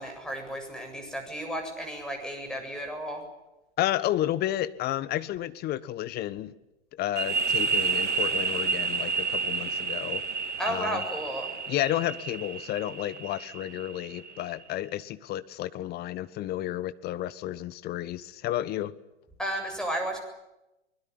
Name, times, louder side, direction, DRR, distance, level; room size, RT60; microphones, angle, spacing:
voice 1, 0.0-3.2 10.6-11.5 19.4-20.2, right 1 dB, ahead, 3 dB, 7.6 m, -33 dB
voice 2, 3.8-6.5 7.0-10.2 10.7-11.0 11.7-18.9, left 13 dB, 25° left, 15 dB, 1.2 m, -31 dB
sound 1, 7.2-14.6, right 4 dB, 80° right, 1.9 m, -30 dB
24.0 x 21.5 x 9.8 m, 0.95 s
figure-of-eight pair, 105°, 35 cm